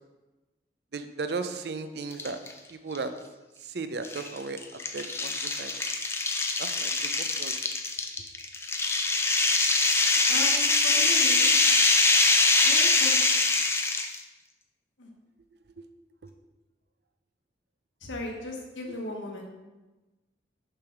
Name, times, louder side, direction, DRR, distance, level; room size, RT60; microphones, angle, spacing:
voice 1, 0.9-2.4 2.7-3.1 3.6-5.3 5.6-5.8 6.6-6.9 7.2-7.5 15.8-15.9, right 4 dB, 60° right, 9 dB, 0.5 m, -35 dB
sound 1, 2.1-2.5 2.9-3.0 4.0-14.2, left 3 dB, 15° left, 0.3 m, -23 dB
voice 2, 10.3-11.5 12.6-13.2 15.0-15.1 18.0-19.4, left 1 dB, 85° left, 0 dB, 1.3 m, -37 dB
6.7 x 3.4 x 5.9 m, 1.1 s
head